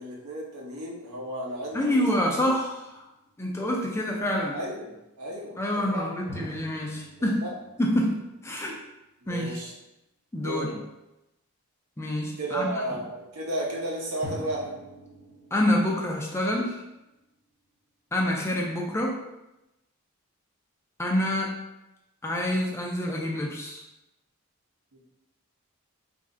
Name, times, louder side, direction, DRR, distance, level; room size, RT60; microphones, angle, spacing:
voice 1, 0.0-2.1 2.4-2.5 4.5-6.0 7.4-7.5 9.2-9.7 10.4-10.7 12.4-14.8 24.9-25.0, right 1 dB, 80° right, -2 dB, 0.9 m, -33 dB
sound 1, 1.6-3.3 6.3-9.0 14.2-17.2, equal, 10° right, 0.9 m, -45 dB
voice 2, 1.7-2.8 3.4-4.6 5.6-7.4 7.8-8.8 9.3-9.6 10.3-10.7 12.0-12.7 15.5-16.8 18.1-19.2 21.0-21.6 22.2-23.8, left 1 dB, 10° left, -2 dB, 0.4 m, -27 dB
3.1 x 2.5 x 3.7 m, 0.94 s
head